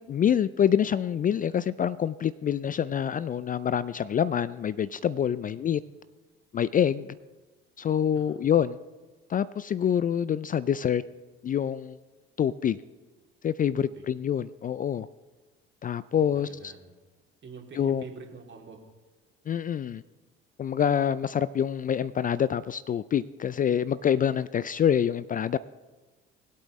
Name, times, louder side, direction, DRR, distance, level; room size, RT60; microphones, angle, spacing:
voice 1, 0.1-5.8 6.5-7.1 7.8-8.8 9.3-11.0 11.4-12.0 12.4-12.8 13.4-15.1 15.8-16.7 17.8-18.0 19.5-20.0 20.6-25.6, left 9 dB, 30° left, 18 dB, 0.4 m, -26 dB
voice 2, 16.2-16.9 17.4-18.8, right 5 dB, 35° right, 1 dB, 2.8 m, -46 dB
21.0 x 8.2 x 3.2 m, 1.2 s
hypercardioid pair, 60°, 31 cm